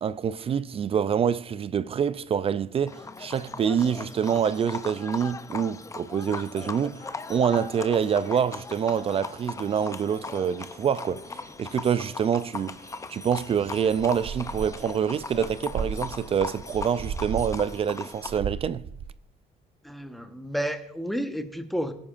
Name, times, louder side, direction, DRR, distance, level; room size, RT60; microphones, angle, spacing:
voice 1, 0.0-11.2 11.6-12.8 13.1-18.8, right 7 dB, 35° right, 0.4 m, -26 dB
Livestock farm animals working animals, 2.9-18.4, left 4 dB, 20° left, 0.6 m, -39 dB
sound 1, 11.0-17.8 18.1-19.1, right 6 dB, 65° right, 1.0 m, -37 dB
voice 2, 19.8-21.9, equal, ahead, 1.1 m, -31 dB
18.5 x 10.5 x 2.5 m
cardioid pair, 110°, 17 cm